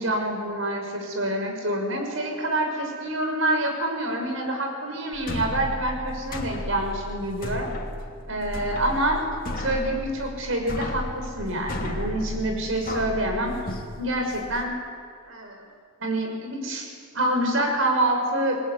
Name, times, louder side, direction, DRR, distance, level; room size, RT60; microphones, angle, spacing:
voice 1, 0.0-7.7 8.3-9.2 9.6-13.6 14.0-14.8 15.2-15.6 16.0-18.6, right 1 dB, 70° right, 3 dB, 6.1 m, -27 dB
sound 1, 5.1-14.6, left 1 dB, 45° left, 2.7 m, -34 dB
27.5 x 19.5 x 9.7 m, 2.1 s
head